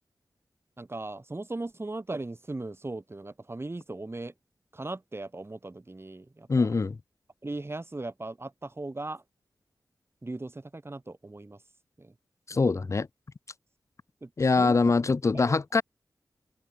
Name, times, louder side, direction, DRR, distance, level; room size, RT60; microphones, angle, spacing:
voice 1, 0.8-4.3 4.7-6.7 7.4-9.2 10.2-11.6 12.0-12.1 12.5-13.0 14.2-14.3 14.6-14.9 15.3-15.5, right 2 dB, 30° right, 2.3 m, -38 dB
voice 2, 6.5-7.0 12.5-13.1 14.4-15.8, left 4 dB, 40° left, 0.5 m, -23 dB
cardioid pair, 45°, 8 cm